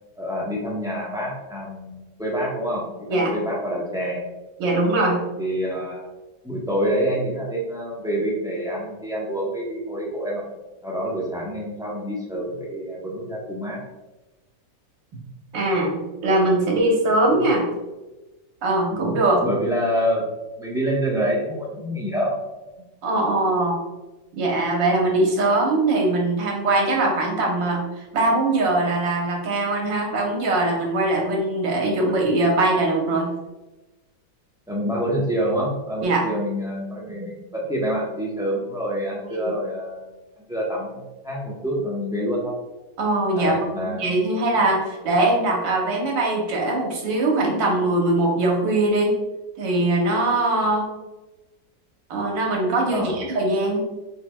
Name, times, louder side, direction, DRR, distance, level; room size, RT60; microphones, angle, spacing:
voice 1, 0.2-4.3 5.4-6.1 6.4-10.5 10.8-13.8 17.3-17.4 18.9-20.3 20.6-22.4 34.7-40.2 40.5-42.5 43.3-44.2 52.9-53.2, equal, 5° right, -5 dB, 0.6 m, -27 dB
voice 2, 4.6-5.4 15.5-17.6 18.6-19.4 23.0-23.8 24.3-33.3 36.0-36.2 37.2-37.4 39.2-39.5 43.0-43.6 43.9-49.1 49.6-50.9 52.1-53.8, right 2 dB, 85° right, 0 dB, 1.8 m, -21 dB
6.8 x 3.3 x 2.3 m, 1.1 s
omnidirectional pair, 1.9 m